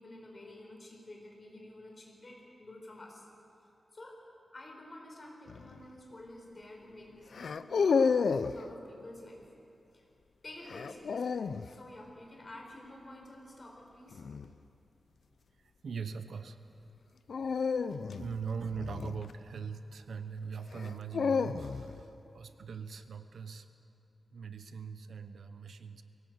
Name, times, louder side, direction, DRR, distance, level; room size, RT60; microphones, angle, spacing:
voice 1, 0.0-3.3 3.6-4.2 4.5-9.5 9.9-10.1 10.4-14.2, left 1 dB, 35° left, 0 dB, 4.6 m, -50 dB
sound 1, 5.5-5.8 7.3-8.6 10.7-11.7 14.1-14.5 17.3-19.7 20.7-22.0, left 5 dB, 75° left, 0.6 m, -31 dB
voice 2, 15.8-16.6 18.1-22.1 22.3-23.6 24.3-26.0, right 6 dB, 85° right, 10 dB, 1.0 m, -41 dB
22.5 x 18.0 x 8.1 m, 2.7 s
wide cardioid pair, 145°, 0 cm